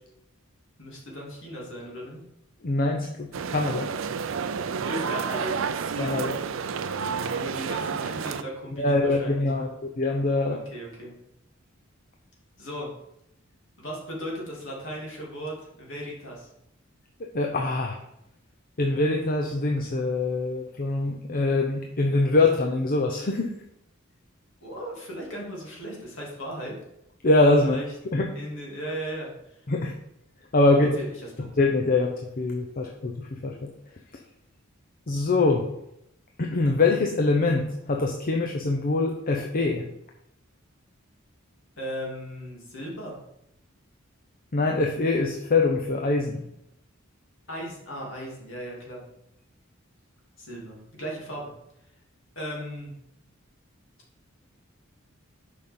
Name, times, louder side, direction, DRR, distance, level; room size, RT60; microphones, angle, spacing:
voice 1, 0.8-2.2 4.9-5.6 6.9-9.7 10.5-11.1 12.6-12.9 13.8-16.5 24.6-26.7 27.6-27.9 28.3-29.3 30.7-31.5 41.8-43.2 47.5-49.0 50.4-51.5 52.3-52.9, equal, 65° left, -3 dB, 2.8 m, -37 dB
voice 2, 2.6-3.9 6.0-6.4 8.8-10.6 17.3-18.0 18.8-23.5 27.2-27.8 28.1-28.3 29.7-29.9 30.5-30.9 31.6-33.7 35.1-35.7 36.4-39.9 44.5-46.4, left 2 dB, 45° left, 2 dB, 0.6 m, -24 dB
sound 1, 3.3-8.4, right 6 dB, 70° right, 0.4 m, -30 dB
6.7 x 5.4 x 5.3 m, 0.80 s
head